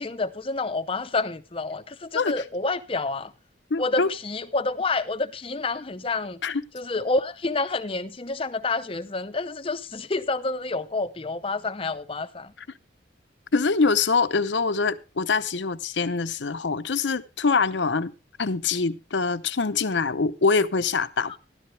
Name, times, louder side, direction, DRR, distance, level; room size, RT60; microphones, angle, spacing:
voice 1, 0.0-3.3 3.8-6.4 6.7-12.5 21.3-21.4, left 3 dB, 30° left, 0.6 m, -28 dB
voice 2, 3.7-4.1 6.4-6.6 13.5-18.1 18.4-21.4, left 4 dB, 85° left, 0.8 m, -24 dB
14.0 x 13.0 x 3.3 m
head